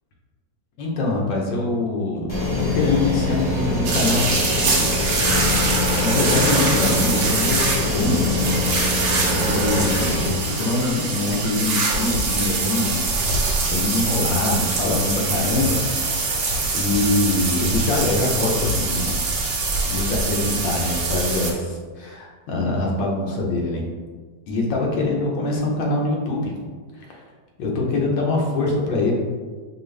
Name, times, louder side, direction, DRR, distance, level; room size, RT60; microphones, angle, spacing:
voice 1, 0.8-5.1 5.5-8.6 9.3-15.8 16.7-19.2 19.8-23.8 24.5-26.5 27.0-27.2 27.6-29.1, left 2 dB, 85° left, -1 dB, 1.6 m, -24 dB
sound 1, 2.3-10.3, left 2 dB, 35° left, 0.3 m, -24 dB
sound 2, 3.8-21.5, right 3 dB, 70° right, 1.4 m, -23 dB
5.1 x 2.4 x 3.2 m, 1.5 s
omnidirectional pair, 2.0 m